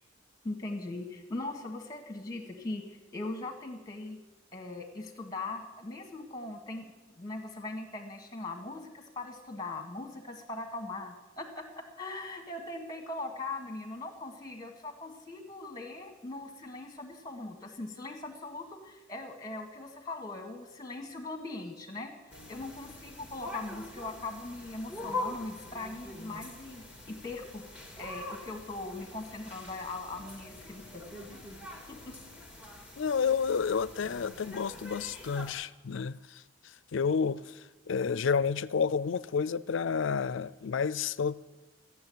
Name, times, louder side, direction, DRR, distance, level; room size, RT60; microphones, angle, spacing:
voice 1, 0.4-4.2 4.5-22.1 22.5-27.6 28.0-31.0 31.9-32.2, left 2 dB, 20° left, 1.8 m, -40 dB
sound 1, 22.3-35.5, left 2 dB, 5° right, 1.8 m, -44 dB
voice 2, 33.0-36.4 36.9-41.3, left 6 dB, 65° left, 0.4 m, -30 dB
15.0 x 7.1 x 9.6 m
head